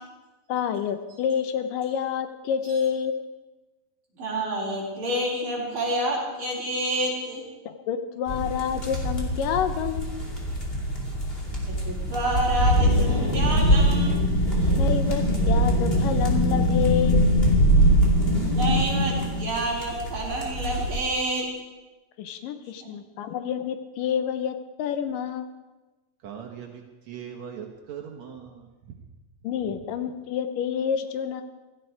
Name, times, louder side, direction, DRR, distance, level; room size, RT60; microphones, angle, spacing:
voice 1, 0.5-3.1 7.7-10.2 14.7-17.2 22.2-25.5 29.4-31.4, left 8 dB, 85° left, 9 dB, 2.5 m, -28 dB
voice 2, 4.2-7.4 11.7-14.2 18.5-21.5 22.8-22.9, right 1 dB, 40° right, -4 dB, 4.6 m, -28 dB
sound 1, 8.3-21.0, right 1 dB, 20° left, 2.3 m, -24 dB
sound 2, 12.7-19.5, left 2 dB, 50° left, 7.7 m, -26 dB
voice 3, 26.2-29.0, right 8 dB, 65° right, 1 dB, 2.2 m, -40 dB
17.0 x 13.5 x 4.7 m, 1.1 s
omnidirectional pair, 3.8 m